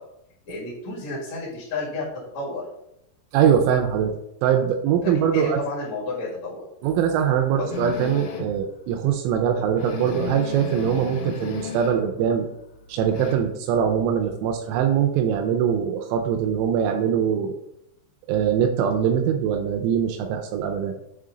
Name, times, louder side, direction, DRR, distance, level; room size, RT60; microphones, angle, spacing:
voice 1, 0.4-2.0 2.3-2.6 5.0-6.7 7.6-7.7, left 3 dB, 45° left, -7 dB, 2.7 m, -31 dB
voice 2, 3.3-5.6 6.8-12.5 12.9-17.6 18.3-21.0, right 8 dB, 90° right, 5 dB, 3.2 m, -22 dB
sound 1, 7.7-8.6 9.1-9.2 9.5-9.6 9.8-12.1 12.4-13.4, left 6 dB, 75° left, 3.2 m, -33 dB
7.9 x 3.7 x 3.7 m, 0.82 s
omnidirectional pair, 5.7 m